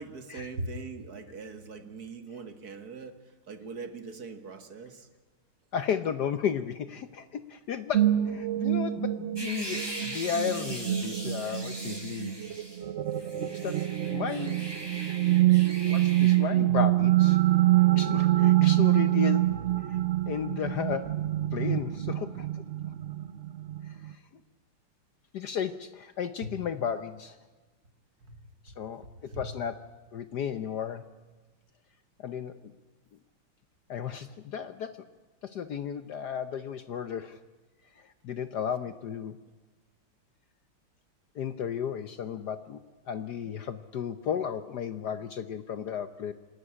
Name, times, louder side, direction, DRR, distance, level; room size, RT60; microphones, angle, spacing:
voice 1, 0.0-3.1 3.5-5.1 26.4-26.5 28.2-28.4 29.0-29.5, right 3 dB, 50° right, 9 dB, 1.9 m, -41 dB
voice 2, 5.7-12.3 13.6-13.8 14.1-14.7 15.8-17.4 17.9-19.6 19.9-20.0 20.3-21.1 21.5-22.5 23.8-24.2 25.3-27.4 28.6-29.8 30.1-31.0 32.2-32.7 33.9-35.0 35.4-37.4 38.0-39.4 41.3-42.8 43.1-46.3, left 8 dB, 60° left, 12 dB, 1.2 m, -34 dB
sound 1, 7.9-24.1, right 15 dB, 70° right, 0.6 m, -26 dB
sound 2, 9.4-12.8 13.1-16.4, right 1 dB, 10° right, 5.6 m, -41 dB
27.0 x 12.5 x 9.9 m, 1.3 s
omnidirectional pair, 2.4 m